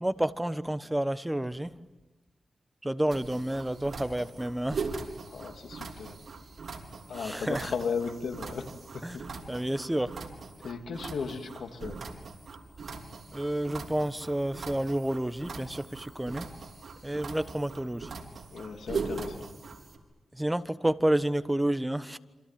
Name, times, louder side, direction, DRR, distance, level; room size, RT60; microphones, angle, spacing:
voice 1, 0.0-1.7 2.8-4.9 7.1-7.7 9.0-9.2 9.5-10.1 13.3-16.5 17.0-18.1 20.3-22.2, right 1 dB, 10° right, 12 dB, 1.2 m, -30 dB
sound 1, 3.1-20.0, right 4 dB, 60° right, 4.6 m, -41 dB
voice 2, 5.3-6.2 7.1-9.7 10.6-12.0 18.5-19.4, left 5 dB, 80° left, 5 dB, 2.9 m, -36 dB
28.0 x 27.5 x 7.6 m, 1.2 s
cardioid pair, 75°, 0 cm